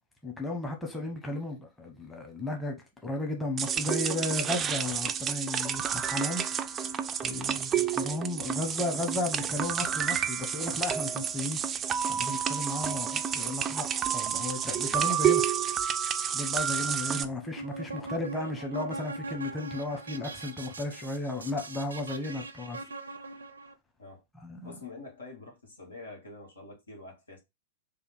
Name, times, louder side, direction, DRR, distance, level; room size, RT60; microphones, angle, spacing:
voice 1, 0.2-2.8 3.0-6.7 7.2-11.6 12.1-13.9 14.1-15.4 16.3-22.8 24.4-24.7, left 2 dB, 10° left, 1.0 m, -34 dB
sound 1, 3.6-17.3, right 8 dB, 25° right, 0.3 m, -30 dB
voice 2, 7.3-8.2 12.8-13.0 16.7-17.4 19.3-19.4 24.0-24.2 24.6-27.4, left 3 dB, 80° left, 1.4 m, -47 dB
sound 2, 17.4-23.7, right 2 dB, 80° right, 0.5 m, -41 dB
3.4 x 2.4 x 4.4 m
figure-of-eight pair, 100°, 0 cm